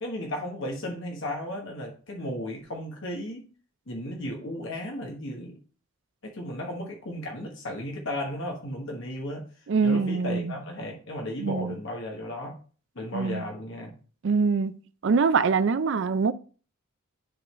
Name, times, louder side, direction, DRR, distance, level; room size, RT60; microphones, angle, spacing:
voice 1, 0.0-3.5 3.9-5.6 6.2-9.4 9.8-12.6 12.9-13.9, left 1 dB, 60° left, 1.2 m, -35 dB
voice 2, 9.7-10.5 11.4-11.8 13.1-13.5 14.2-14.8 15.0-16.3, right 5 dB, 55° right, 0.4 m, -24 dB
10.0 x 3.8 x 3.1 m
head